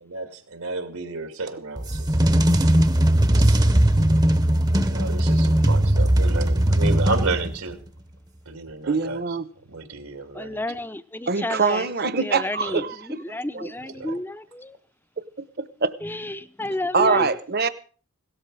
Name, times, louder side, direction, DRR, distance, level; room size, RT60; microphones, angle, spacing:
voice 1, 0.1-2.2 3.4-3.6 4.9-7.8 8.5-9.2 9.7-10.6 13.9-14.2, right 3 dB, 85° right, 7 dB, 2.6 m, -31 dB
sound 1, 1.8-7.7, right 1 dB, 20° right, 0.8 m, -19 dB
voice 2, 8.9-9.5 11.3-13.7 15.4-15.9 16.9-17.7, right 4 dB, 45° right, 14 dB, 1.0 m, -24 dB
voice 3, 10.3-11.9 12.2-14.8 16.0-17.3, left 1 dB, 10° left, 13 dB, 0.6 m, -31 dB
17.5 x 13.0 x 4.9 m, 0.42 s
head